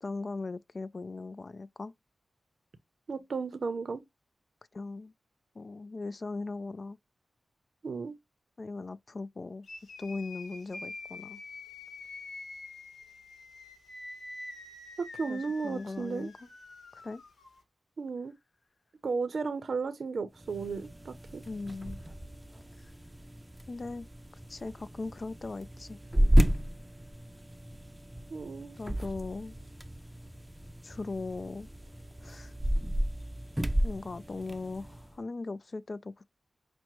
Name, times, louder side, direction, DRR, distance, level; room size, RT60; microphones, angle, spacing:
voice 1, 0.0-1.9 4.7-5.1 5.6-7.0 8.6-9.7 10.0-11.4 15.3-16.5 16.9-17.2 21.5-22.0 22.8-22.9 23.7-24.1 24.5-26.0 28.8-29.6 30.8-31.7 32.2-32.5 33.8-36.2, left 3 dB, 50° left, 0.3 m, -39 dB
voice 2, 3.1-4.0 7.8-8.2 15.0-16.3 18.0-18.3 19.0-21.4 28.3-28.8, right 4 dB, 70° right, 0.6 m, -34 dB
sound 1, 9.6-17.6, left 3 dB, 85° left, 0.9 m, -46 dB
sound 2, 20.4-35.1, equal, 10° right, 0.5 m, -32 dB
5.8 x 2.1 x 3.0 m
cardioid pair, 65°, 0 cm